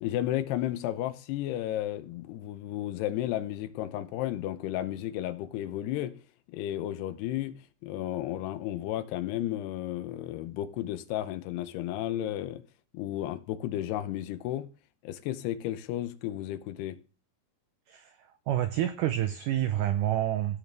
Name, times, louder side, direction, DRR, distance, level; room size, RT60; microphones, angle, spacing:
voice 1, 0.0-6.1 6.5-7.5 7.8-12.6 12.9-14.7 15.0-17.0, left 13 dB, 90° left, 2.9 m, -33 dB
voice 2, 17.9-20.6, right 12 dB, 85° right, 1.8 m, -29 dB
16.5 x 6.6 x 3.4 m
omnidirectional pair, 4.6 m